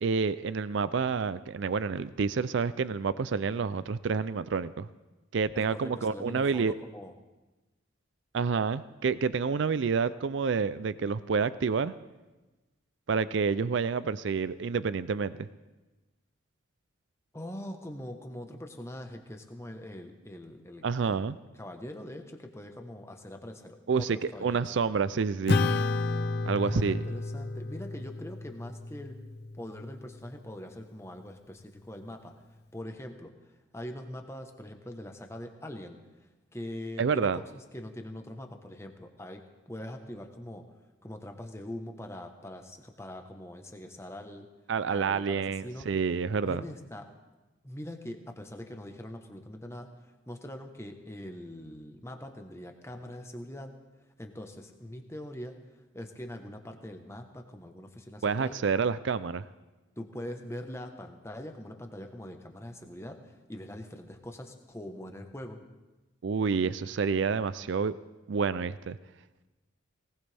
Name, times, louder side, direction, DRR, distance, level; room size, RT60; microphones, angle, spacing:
voice 1, 0.0-4.9 5.3-6.7 8.3-11.9 13.1-15.3 20.8-21.4 23.9-25.6 26.4-27.0 37.0-37.4 44.7-46.6 58.2-59.4 66.2-67.9 68.3-69.0, right 5 dB, 60° right, 16 dB, 0.4 m, -28 dB
voice 2, 5.5-7.1 17.3-21.3 21.6-24.7 26.6-29.2 29.6-32.3 32.7-33.3 33.7-40.7 41.0-44.5 44.9-45.9 46.4-47.1 47.6-49.9 50.3-53.7 54.2-55.5 55.9-58.6 60.0-65.6, left 1 dB, 15° left, 5 dB, 1.1 m, -42 dB
Acoustic guitar / Strum, 25.5-30.3, left 3 dB, 50° left, 0.5 m, -31 dB
19.0 x 19.0 x 3.5 m, 1.1 s
head